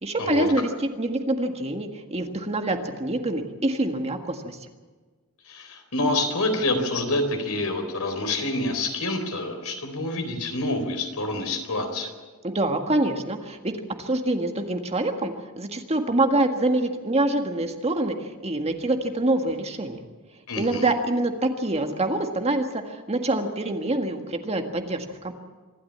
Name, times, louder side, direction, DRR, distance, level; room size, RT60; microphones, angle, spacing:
voice 1, 0.0-4.6 12.4-20.0 20.6-25.3, right 2 dB, 30° right, 5 dB, 1.7 m, -26 dB
voice 2, 5.4-12.1 20.5-20.9, left 2 dB, 70° left, 5 dB, 4.0 m, -27 dB
25.5 x 13.0 x 8.7 m, 1.4 s
head